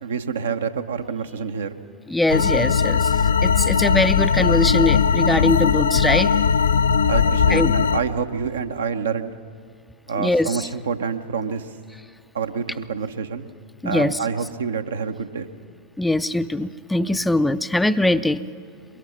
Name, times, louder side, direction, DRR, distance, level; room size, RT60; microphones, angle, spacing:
voice 1, 0.0-1.8 7.1-9.3 10.1-11.7 12.3-13.5 13.8-15.5, right 6 dB, 65° right, 8 dB, 0.9 m, -27 dB
voice 2, 2.1-6.3 7.5-7.8 10.2-10.7 13.8-14.2 16.0-18.4, left 2 dB, 5° left, 13 dB, 0.4 m, -22 dB
sound 1, 2.3-8.0, left 6 dB, 65° left, 0.5 m, -19 dB
23.0 x 22.5 x 5.8 m, 2.1 s
figure-of-eight pair, 90°, 0 cm